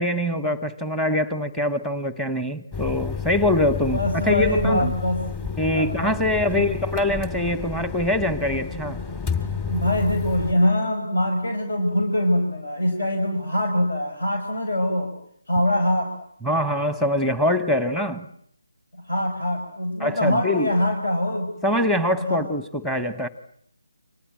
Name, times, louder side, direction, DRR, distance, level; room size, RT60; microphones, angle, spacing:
voice 1, 0.0-4.9 5.6-9.0 16.4-18.3 20.0-20.7 21.6-23.3, left 1 dB, 5° left, 13 dB, 1.2 m, -24 dB
sound 1, 2.7-10.5, left 6 dB, 20° left, 2.5 m, -31 dB
voice 2, 3.9-5.2 5.7-6.3 6.5-6.7 9.7-15.1 15.5-16.1 19.0-21.5 22.2-22.4, left 1 dB, 70° left, 4 dB, 5.7 m, -23 dB
29.0 x 25.0 x 7.5 m, 0.67 s
figure-of-eight pair, 155°, 0 cm